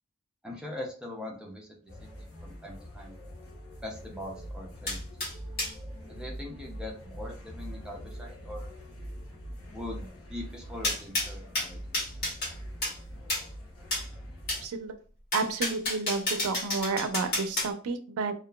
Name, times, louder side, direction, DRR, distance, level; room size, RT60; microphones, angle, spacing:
voice 1, 0.4-3.2 3.8-5.1 6.1-8.7 9.7-12.0, left 1 dB, 5° right, -1 dB, 0.4 m, -42 dB
sound 1, 1.9-14.7, equal, 80° left, 0.8 m, -43 dB
sound 2, 4.9-5.7 10.8-12.5 12.8-13.0 13.3-13.5 13.9-14.1 14.5-14.6 15.3-17.7, left 1 dB, 45° left, 1.4 m, -31 dB
voice 2, 14.6-14.9 15.3-18.3, right 4 dB, 85° right, 8 dB, 0.4 m, -31 dB
2.8 x 2.3 x 2.2 m, 0.41 s
head